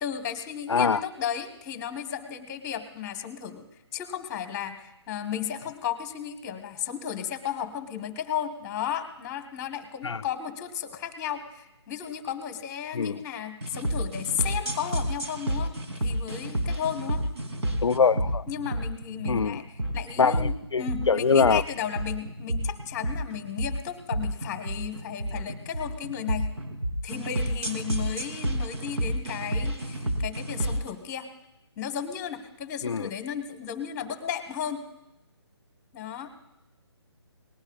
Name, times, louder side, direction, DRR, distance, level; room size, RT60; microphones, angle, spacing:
voice 1, 0.0-3.6 3.9-15.7 16.0-17.2 18.5-26.5 27.0-31.3 31.8-34.8 35.9-36.3, left 9 dB, 15° left, 7 dB, 1.2 m, -34 dB
voice 2, 0.7-1.0 10.0-10.2 12.9-13.2 17.8-18.4 19.3-19.6 20.2-21.6 32.8-33.1, left 5 dB, 80° left, 14 dB, 0.5 m, -23 dB
sound 1, 13.6-30.9, right 1 dB, 70° right, 3.0 m, -30 dB
23.5 x 19.5 x 2.4 m, 0.89 s
figure-of-eight pair, 150°, 15 cm